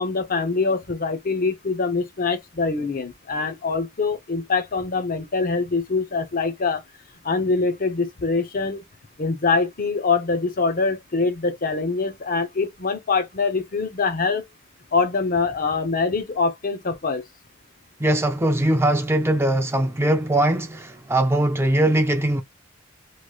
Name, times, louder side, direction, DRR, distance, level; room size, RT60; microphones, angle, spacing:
voice 1, 0.0-6.8 7.2-8.8 9.2-14.4 14.9-17.2, left 4 dB, 45° left, 0.7 m, -24 dB
voice 2, 18.0-22.4, right 1 dB, 10° right, 0.4 m, -21 dB
3.1 x 2.9 x 2.4 m
head